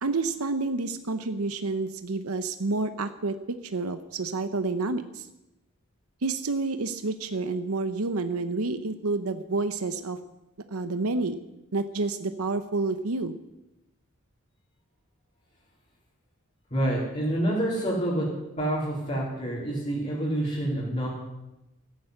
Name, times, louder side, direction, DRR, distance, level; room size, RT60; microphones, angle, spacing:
voice 1, 0.0-3.3 3.6-5.3 6.2-10.2 10.7-11.4 11.7-13.4, right 3 dB, 85° right, 10 dB, 0.9 m, -29 dB
voice 2, 16.7-18.3 18.6-21.1, right 1 dB, 35° left, -7 dB, 4.0 m, -27 dB
15.0 x 10.5 x 8.0 m, 0.95 s
head